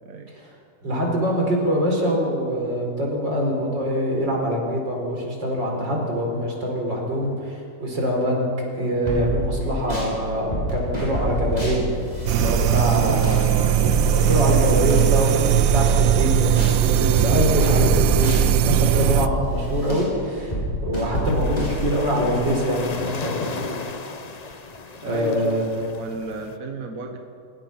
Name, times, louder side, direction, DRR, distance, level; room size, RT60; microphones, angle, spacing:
voice 1, 0.8-8.5 8.7-11.8 12.4-23.7 25.1-25.7, equal, 85° right, 0 dB, 5.2 m, -24 dB
sound 1, 9.1-10.1 10.5-16.8 17.2-22.4, equal, 20° left, 6.7 m, -28 dB
sound 2, 12.3-19.3, right 11 dB, 65° right, 0.9 m, -19 dB
sound 3, 21.2-26.6, left 4 dB, 35° left, 0.6 m, -34 dB
voice 2, 25.0-27.2, right 3 dB, 50° right, 3 dB, 1.8 m, -33 dB
28.5 x 16.5 x 5.9 m, 2.4 s
omnidirectional pair, 1.9 m